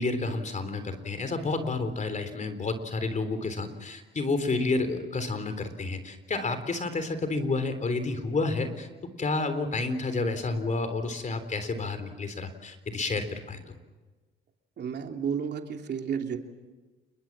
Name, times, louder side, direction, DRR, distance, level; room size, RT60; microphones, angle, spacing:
voice 1, 0.0-8.9 9.2-13.8, left 3 dB, 40° left, 9 dB, 3.7 m, -30 dB
voice 2, 14.8-16.4, right 7 dB, 60° right, 3 dB, 2.9 m, -32 dB
28.5 x 22.0 x 7.5 m, 1.3 s
cardioid pair, 90°, 20 cm